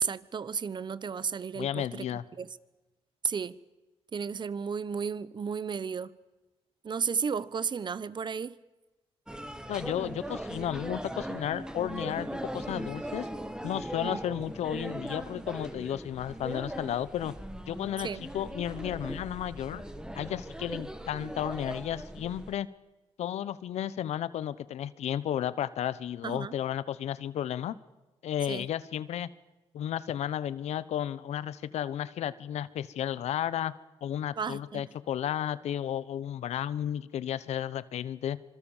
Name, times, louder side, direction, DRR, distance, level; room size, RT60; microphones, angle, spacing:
voice 1, 0.0-2.1 2.4-2.5 3.2-3.6 4.1-6.1 6.8-8.5 14.0-14.2 18.0-18.2 26.2-26.5 28.5-28.7 34.4-34.9, right 6 dB, 45° right, 1.0 m, -33 dB
voice 2, 1.5-2.2 9.7-13.3 13.6-17.3 17.7-19.8 20.1-22.7 23.2-27.7 28.2-29.3 29.7-33.7 34.0-38.4, left 10 dB, 85° left, 1.0 m, -33 dB
sound 1, 9.3-22.5, right 1 dB, 5° right, 2.0 m, -39 dB
26.0 x 24.5 x 7.3 m
cardioid pair, 95°, 11 cm